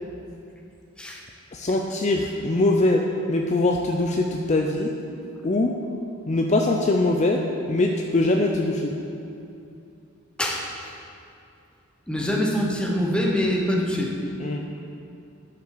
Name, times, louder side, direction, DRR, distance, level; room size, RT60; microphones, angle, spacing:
voice 1, 1.5-3.0 3.3-4.9 5.4-5.7 6.3-7.4 7.7-8.9 14.4-14.7, left 2 dB, 35° left, 1 dB, 0.5 m, -22 dB
voice 2, 12.1-14.1, equal, 5° left, -1 dB, 1.1 m, -24 dB
11.5 x 5.7 x 6.6 m, 2.6 s
head